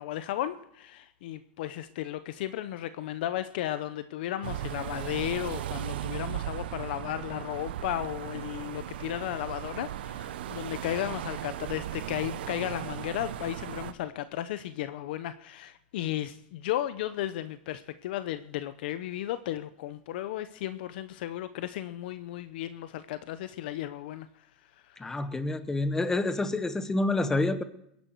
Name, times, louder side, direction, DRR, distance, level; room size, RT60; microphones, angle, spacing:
voice 1, 0.0-24.5 24.9-25.1, left 13 dB, 70° left, 12 dB, 0.7 m, -34 dB
sound 1, 4.4-13.9, right 11 dB, 90° right, 0.8 m, -37 dB
voice 2, 25.0-27.6, left 2 dB, 10° left, 11 dB, 1.0 m, -28 dB
22.0 x 10.5 x 4.6 m, 0.76 s
supercardioid pair, 140°, 5 cm